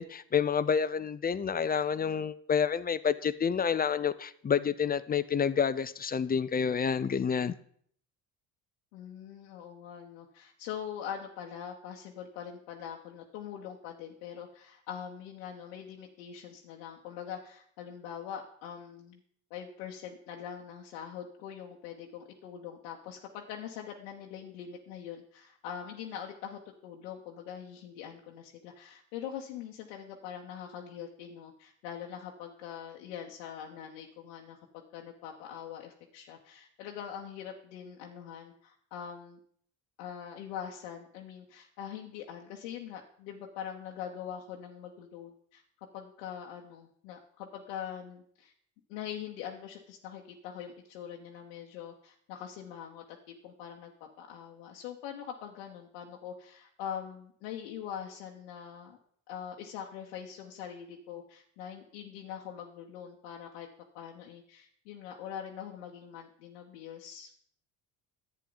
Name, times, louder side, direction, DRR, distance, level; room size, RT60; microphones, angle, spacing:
voice 1, 0.0-7.5, left 7 dB, 20° left, 15 dB, 0.5 m, -29 dB
voice 2, 8.9-19.2 19.5-39.4 40.0-45.6 45.9-48.5 48.9-59.0 59.3-63.7 63.9-67.3, left 8 dB, 85° left, -1 dB, 1.1 m, -43 dB
11.0 x 8.3 x 3.9 m, 0.62 s
supercardioid pair, 70°, 44 cm